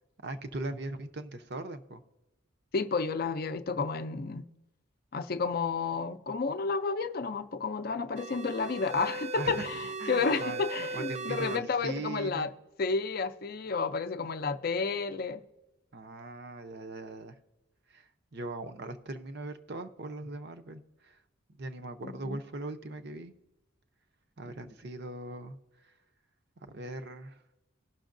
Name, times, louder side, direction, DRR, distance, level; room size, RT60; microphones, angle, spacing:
voice 1, 0.2-2.0 9.4-9.7 10.0-12.5 15.9-17.3 17.9-21.2 21.6-23.3 24.4-25.6 26.6-27.4, right 2 dB, 55° right, 0.7 m, -40 dB
voice 2, 2.7-4.4 5.1-9.7 10.1-12.5 12.8-15.4 22.0-22.4, left 4 dB, 45° left, 0.4 m, -31 dB
sound 1, 8.2-11.6, right 3 dB, 30° right, 0.3 m, -38 dB
18.5 x 6.2 x 2.6 m
head